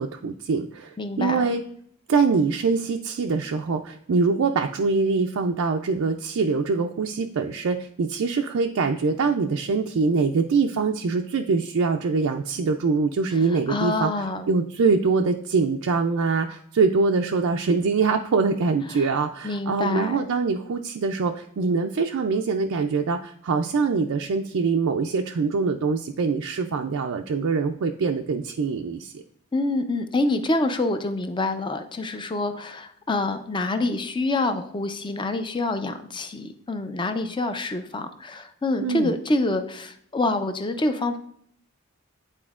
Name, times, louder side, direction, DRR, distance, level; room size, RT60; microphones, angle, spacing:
voice 1, 0.0-1.6 2.1-14.1 14.5-29.2 38.8-39.1, right 4 dB, 70° right, 3 dB, 0.4 m, -24 dB
voice 2, 1.0-1.5 13.7-14.5 18.9-19.1 19.4-20.3 29.5-41.2, left 2 dB, 25° left, 8 dB, 0.5 m, -26 dB
9.8 x 4.3 x 2.4 m, 0.67 s
head